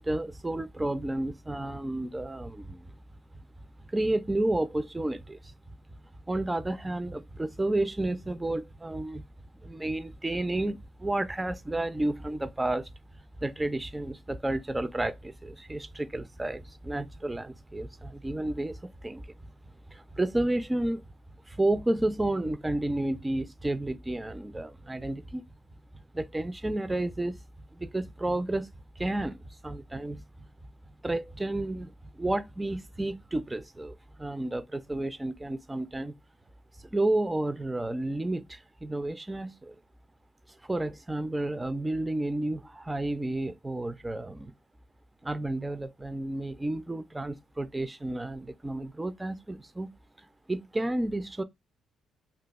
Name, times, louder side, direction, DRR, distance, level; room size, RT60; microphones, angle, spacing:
voice 1, 0.0-2.9 3.9-5.5 6.3-9.2 9.6-12.9 13.4-19.3 19.9-21.0 21.5-25.4 26.1-27.4 27.7-30.2 31.0-36.1 36.9-39.7 40.7-44.5 45.2-49.9 50.5-51.4, right 1 dB, 15° right, 0.3 m, -31 dB
2.6 x 2.3 x 3.9 m
cardioid pair, 90°, 0 cm